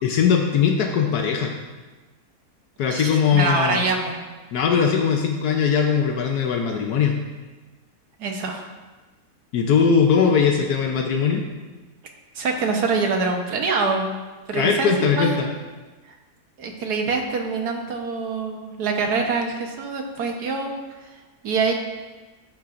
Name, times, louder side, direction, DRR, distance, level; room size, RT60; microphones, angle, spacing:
voice 1, 0.0-1.5 2.8-3.8 4.5-7.1 9.5-11.4 14.5-15.5, left 6 dB, 80° left, 2 dB, 1.3 m, -20 dB
voice 2, 2.9-4.2 8.2-8.7 12.3-14.1 14.5-14.9 15.2-15.4 16.6-20.7 21.4-21.7, right 4 dB, 90° right, 2 dB, 1.7 m, -24 dB
13.0 x 8.5 x 2.6 m, 1.3 s
omnidirectional pair, 1.6 m